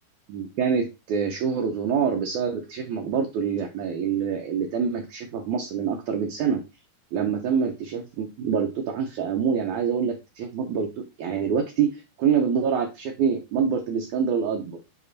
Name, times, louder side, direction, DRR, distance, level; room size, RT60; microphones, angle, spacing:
voice 1, 0.3-6.6 7.1-10.9 11.2-14.8, right 6 dB, 80° right, 3 dB, 1.8 m, -26 dB
8.5 x 2.9 x 4.0 m, 0.26 s
omnidirectional pair, 4.4 m